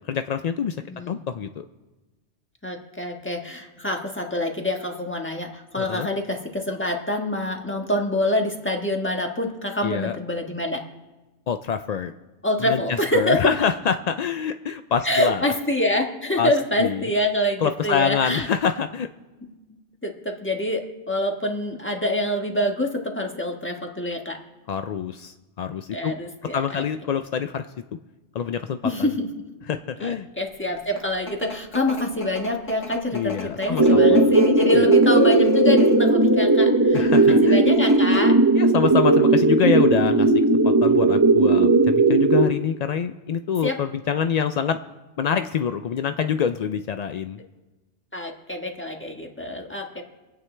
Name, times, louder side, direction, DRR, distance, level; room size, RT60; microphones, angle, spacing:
voice 1, 0.1-0.8 1.1-1.7 5.8-6.1 9.8-10.2 11.5-12.1 12.6-12.8 13.1-15.5 16.4-16.5 16.8-17.1 17.6-19.1 24.7-26.1 26.5-27.7 28.3-29.1 29.7-30.3 33.1-34.4 34.6-34.9 36.9-37.6 38.5-40.3 40.6-44.8 45.2-47.4, left 7 dB, 70° left, 9 dB, 0.3 m, -26 dB
voice 2, 0.9-1.2 2.6-10.8 12.4-13.4 15.0-18.5 19.4-19.5 20.0-24.4 25.9-26.8 28.8-29.3 30.0-38.4 43.6-43.8 48.1-50.0, left 1 dB, 10° left, 1 dB, 1.3 m, -26 dB
sound 1, 30.7-36.1 36.8-37.2 37.6-37.7 37.9-38.4, left 3 dB, 85° left, 1.9 m, -36 dB
sound 2, 33.8-42.5, right 2 dB, 20° right, 0.7 m, -17 dB
26.5 x 9.0 x 3.3 m, 1.1 s
omnidirectional pair, 1.2 m